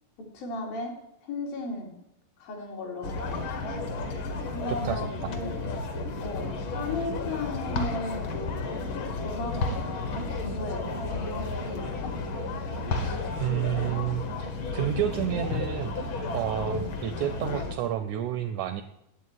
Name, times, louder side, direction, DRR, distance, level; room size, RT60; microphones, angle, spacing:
voice 1, 0.3-0.9 1.2-1.9 2.4-3.4 4.5-5.7 6.2-8.5 8.9-12.1 16.7-16.9, left 3 dB, 80° left, 0 dB, 4.3 m, -36 dB
sound 1, 3.0-17.7, left 3 dB, 55° left, 1.4 m, -32 dB
voice 2, 4.7-5.3 13.0-14.2 14.7-15.9 16.3-18.8, right 10 dB, 85° right, 9 dB, 1.7 m, -30 dB
9.2 x 8.5 x 9.5 m, 0.83 s
omnidirectional pair, 4.0 m